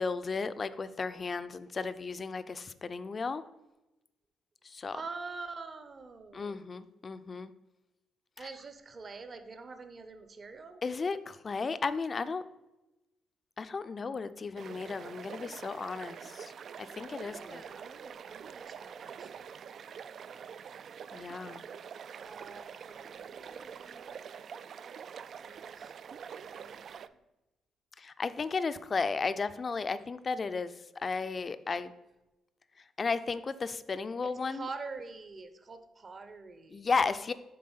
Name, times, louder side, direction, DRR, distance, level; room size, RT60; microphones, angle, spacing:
voice 1, 0.0-3.4 4.6-5.0 6.3-7.5 8.4-8.5 10.8-12.4 13.6-16.5 16.8-17.6 21.1-21.7 28.0-31.9 33.0-34.7 36.7-37.3, left 4 dB, 35° left, 13 dB, 0.4 m, -34 dB
voice 2, 4.9-6.6 8.4-10.8 17.0-19.6 21.4-21.5 22.2-24.2 25.4-27.1 34.2-36.9, right 4 dB, 40° right, 9 dB, 0.8 m, -46 dB
sound 1, 14.6-27.1, right 7 dB, 60° right, 0.3 m, -46 dB
7.7 x 3.5 x 5.6 m, 0.98 s
cardioid pair, 90°, 0 cm